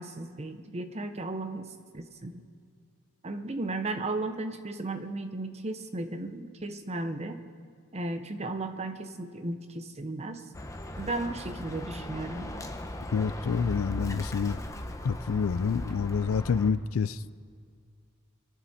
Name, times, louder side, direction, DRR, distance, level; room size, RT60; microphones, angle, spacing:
voice 1, 0.0-1.7 1.9-2.4 3.2-7.4 7.9-10.4 11.0-12.5 14.6-14.7, right 2 dB, 30° right, 7 dB, 0.9 m, -35 dB
Bird, 10.5-16.7, left 1 dB, 15° left, 0.9 m, -38 dB
voice 2, 13.1-14.6 15.0-17.2, left 6 dB, 80° left, 18 dB, 0.4 m, -28 dB
24.5 x 11.0 x 4.3 m, 2.1 s
head